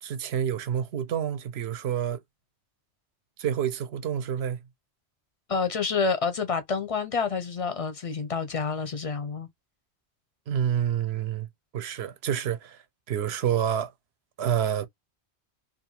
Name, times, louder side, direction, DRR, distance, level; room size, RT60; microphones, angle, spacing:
voice 1, 0.0-2.2 3.4-4.6 10.5-11.5 11.7-12.8 13.1-13.9 14.4-14.9, right 9 dB, 70° right, 0.8 m, -28 dB
voice 2, 5.5-9.5, left 5 dB, 45° left, 0.5 m, -28 dB
2.5 x 2.3 x 2.7 m
omnidirectional pair, 1.1 m